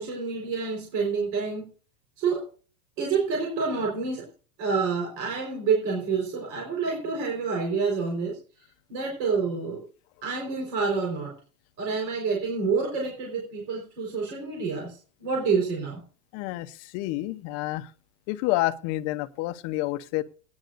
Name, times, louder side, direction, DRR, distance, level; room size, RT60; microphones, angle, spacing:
voice 1, 0.0-1.7 2.2-2.4 3.0-4.3 4.6-8.4 8.9-9.8 10.2-11.3 11.8-14.9 15.2-16.0, right 5 dB, 40° right, 0 dB, 4.5 m, -28 dB
voice 2, 16.3-17.9 18.3-20.2, left 17 dB, 35° left, 10 dB, 0.8 m, -29 dB
18.5 x 10.5 x 2.6 m, 0.38 s
supercardioid pair, 160°, 41 cm